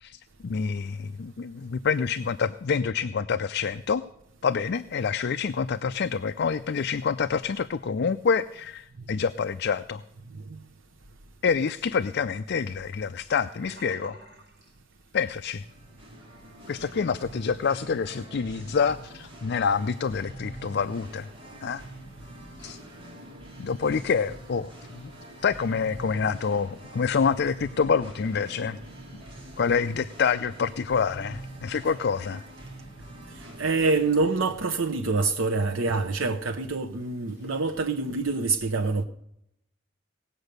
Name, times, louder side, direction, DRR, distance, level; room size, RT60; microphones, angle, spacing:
voice 1, 0.0-4.0 4.4-10.0 11.4-14.2 15.1-15.6 16.7-21.3 21.6-21.8 22.6-22.8 23.6-25.1 25.4-28.8 29.6-32.4, left 6 dB, 60° left, 0.4 m, -27 dB
Sink (filling or washing), 13.6-15.6 15.9-16.2 16.6-16.7, right 1 dB, 60° right, 4.4 m, -49 dB
Singing, 15.5-34.7, right 1 dB, 30° right, 3.3 m, -45 dB
voice 2, 33.3-39.0, right 3 dB, 90° right, 0.8 m, -26 dB
18.0 x 8.0 x 6.6 m
head